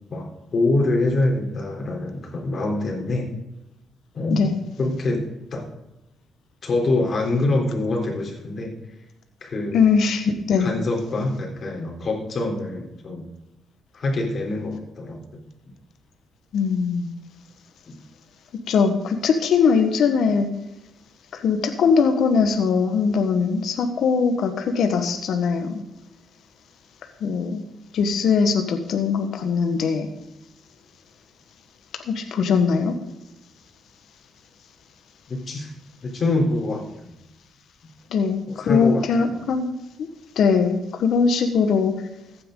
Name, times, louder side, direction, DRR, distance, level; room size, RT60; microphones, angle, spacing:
voice 1, 0.1-3.3 4.1-4.5 4.8-5.2 5.5-5.6 6.6-8.8 9.4-9.8 10.6-13.3 13.9-15.2 35.3-35.7 36.0-37.1 38.5-39.4, left 2 dB, 45° left, 1 dB, 3.7 m, -25 dB
voice 2, 9.7-10.7 16.5-17.1 18.7-20.5 21.3-25.8 27.2-27.6 27.9-30.1 32.1-32.9 38.1-39.7 40.0-40.1 40.3-41.9, left 5 dB, 70° left, 6 dB, 1.4 m, -21 dB
15.0 x 9.8 x 3.9 m, 0.93 s
cardioid pair, 90°, 0 cm